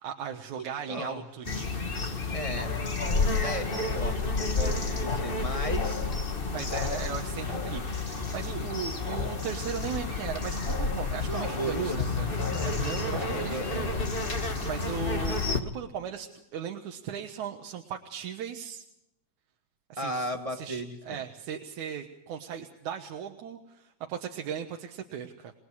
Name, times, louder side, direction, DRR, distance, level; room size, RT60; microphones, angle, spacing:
voice 1, 0.0-2.2 6.5-12.3 12.6-13.9 14.3-18.8 19.9-20.1 20.5-25.5, right 8 dB, 85° right, 3 dB, 2.8 m, -37 dB
voice 2, 0.6-1.3 2.3-6.1 11.3-12.7 13.1-14.1 20.0-21.2, right 1 dB, 35° right, 4 dB, 0.5 m, -36 dB
sound 1, 1.4-15.6, left 3 dB, 30° left, 1.1 m, -30 dB
29.0 x 20.5 x 4.9 m, 0.82 s
omnidirectional pair, 3.3 m